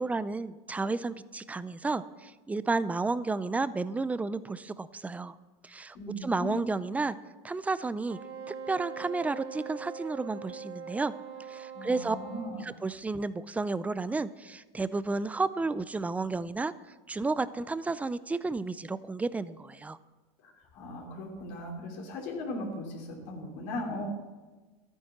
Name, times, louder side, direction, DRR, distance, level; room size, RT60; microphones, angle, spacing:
voice 1, 0.0-5.4 5.6-6.0 6.2-7.1 7.4-8.2 8.5-11.1 11.5-12.2 12.6-16.7 17.1-20.0, right 3 dB, 10° right, 15 dB, 0.4 m, -32 dB
voice 2, 5.9-6.6 11.7-12.7 20.4-24.1, left 1 dB, 70° left, -1 dB, 3.3 m, -38 dB
Wind instrument woodwind instrument, 8.1-12.6, right 6 dB, 60° right, 3.7 m, -42 dB
12.5 x 9.2 x 6.0 m, 1.3 s
supercardioid pair, 130°, 15 cm